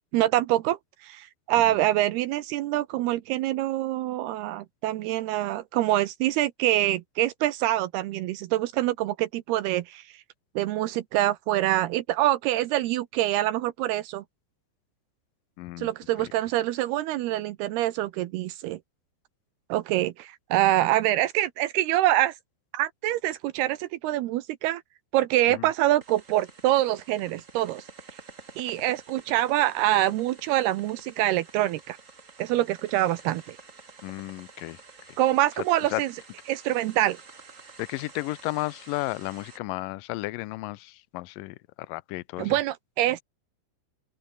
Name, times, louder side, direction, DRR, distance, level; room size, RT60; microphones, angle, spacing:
voice 1, 0.1-10.0 10.6-14.2 15.8-18.8 19.7-22.3 22.7-24.8 25.1-27.8 28.6-32.0 32.4-33.6 35.2-36.1 36.5-37.2 42.4-43.2, right 14 dB, 80° right, 2.8 m, -25 dB
voice 2, 15.6-15.9 16.2-16.3 25.5-25.7 34.0-34.8 35.9-36.0 37.8-41.6 41.9-42.6, left 20 dB, 85° left, 1.9 m, -33 dB
sound 1, 26.0-39.6, right 4 dB, 30° right, 1.6 m, -49 dB
open air
omnidirectional pair, 4.8 m